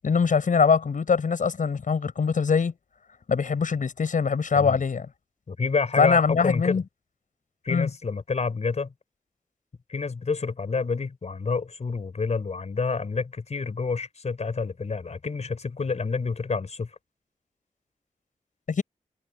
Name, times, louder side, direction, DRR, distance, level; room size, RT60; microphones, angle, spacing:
voice 1, 0.0-2.7 3.3-5.1 6.0-6.8 7.7-7.9 18.7-18.8, left 5 dB, 75° left, 7.0 m, -22 dB
voice 2, 5.5-6.8 7.6-8.9 9.9-16.9, left 4 dB, 55° left, 5.1 m, -28 dB
wide cardioid pair, 110°, 13 cm